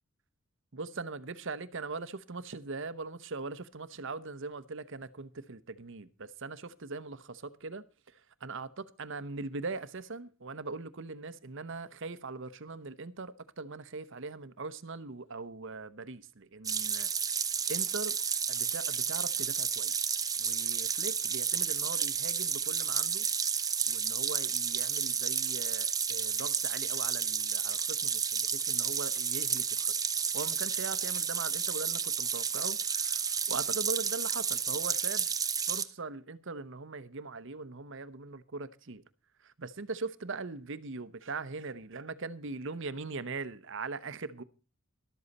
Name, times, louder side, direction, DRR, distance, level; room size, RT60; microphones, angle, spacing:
voice 1, 0.7-17.1 17.7-18.1 18.5-20.1 20.4-23.3 23.9-30.0 30.3-35.3 35.7-39.0 39.4-44.4, right 3 dB, 60° right, 0.9 m, -41 dB
sound 1, 16.6-35.8, right 6 dB, 15° right, 0.7 m, -31 dB
13.0 x 12.5 x 4.2 m
head